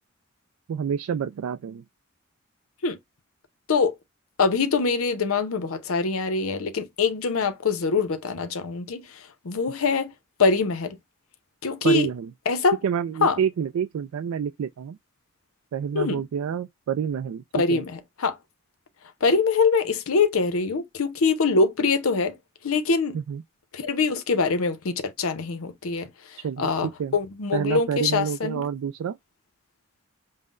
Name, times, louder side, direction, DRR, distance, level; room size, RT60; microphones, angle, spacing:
voice 1, 0.7-1.8 11.8-12.3 12.8-15.0 15.7-17.4 17.7-17.8 23.1-23.4 26.4-26.7 27.0-27.1 27.5-29.2, right 7 dB, 85° right, 0.3 m, -28 dB
voice 2, 4.4-10.1 10.4-11.0 11.6-12.1 12.5-12.8 13.2-13.4 15.9-16.2 17.5-18.4 19.2-22.4 22.6-23.2 23.7-28.7, left 4 dB, 85° left, 0.6 m, -24 dB
5.5 x 2.0 x 2.4 m
head